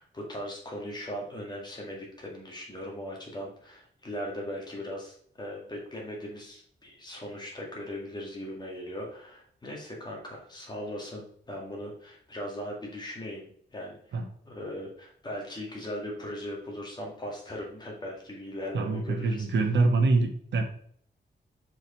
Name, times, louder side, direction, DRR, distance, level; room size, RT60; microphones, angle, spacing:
voice 1, 0.0-19.5, equal, 25° left, -2 dB, 1.9 m, -39 dB
voice 2, 18.7-20.6, right 3 dB, 85° right, 4 dB, 1.1 m, -25 dB
6.2 x 4.7 x 4.3 m, 0.62 s
wide cardioid pair, 170°, 19 cm